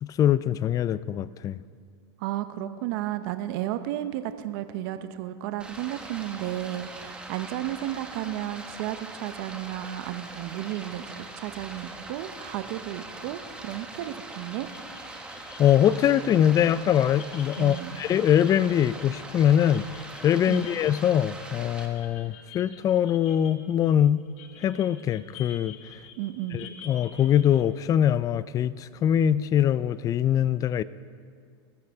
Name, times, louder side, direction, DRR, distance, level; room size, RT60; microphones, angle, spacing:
voice 1, 0.0-1.6 15.6-19.8 20.2-24.2 24.6-25.8 26.5-30.8, left 10 dB, 25° left, 17 dB, 0.4 m, -23 dB
voice 2, 2.2-14.7 17.6-18.0 20.5-20.7 26.2-26.7, right 13 dB, 60° right, 10 dB, 0.8 m, -33 dB
Stream, 5.6-21.9, right 2 dB, 5° right, 1.5 m, -42 dB
sound 1, 14.5-27.6, left 7 dB, 45° left, 1.6 m, -49 dB
21.0 x 14.0 x 3.6 m, 2.1 s
supercardioid pair, 125°, 14 cm